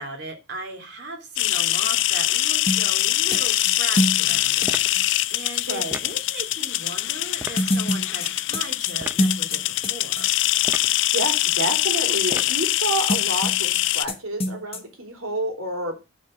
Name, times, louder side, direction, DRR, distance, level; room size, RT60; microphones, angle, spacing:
voice 1, 0.0-10.3, right 2 dB, 55° right, 3 dB, 2.6 m, -38 dB
sound 1, 1.4-14.0, left 15 dB, 60° left, 0.4 m, -23 dB
sound 2, 2.7-5.0 7.6-9.9 10.2-10.3 13.1-13.8 14.1-14.2 14.4-14.8, left 1 dB, 30° left, 1.1 m, -25 dB
sound 3, 4.7-5.0 5.9-6.2 7.4-7.6 9.0-9.2 10.6-11.0 12.3-12.6, right 1 dB, 10° right, 0.6 m, -35 dB
voice 2, 5.7-6.0 10.7-16.0, right 1 dB, 80° right, 3 dB, 3.1 m, -29 dB
9.9 x 4.4 x 6.2 m, 0.28 s
head